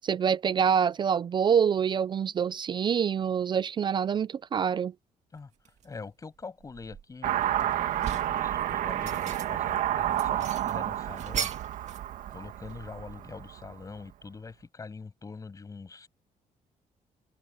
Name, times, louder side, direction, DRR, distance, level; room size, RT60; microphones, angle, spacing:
voice 1, 0.0-4.9, right 7 dB, 35° right, 0.4 m, -26 dB
sound 1, 5.7-5.9 6.4-7.4 7.8-8.4 8.9-9.7 10.1-12.1 12.3-13.4, right 8 dB, 55° right, 2.3 m, -38 dB
voice 2, 5.8-11.5 12.3-16.1, left 4 dB, 25° left, 7.0 m, -44 dB
Car passing by / Accelerating revving vroom, 7.2-13.8, right 12 dB, 85° right, 2.0 m, -30 dB
cardioid pair, 140°, 14 cm